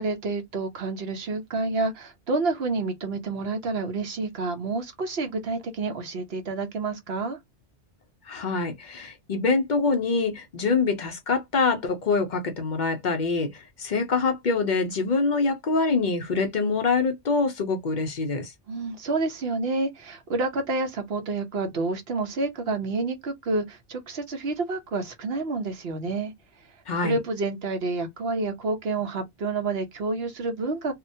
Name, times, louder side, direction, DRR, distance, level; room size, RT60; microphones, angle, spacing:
voice 1, 0.0-7.4 18.7-26.3 27.0-30.9, right 3 dB, 60° right, 1.0 m, -29 dB
voice 2, 8.3-18.5 26.9-27.2, left 4 dB, 50° left, 0.6 m, -25 dB
2.8 x 2.1 x 2.6 m
omnidirectional pair, 1.2 m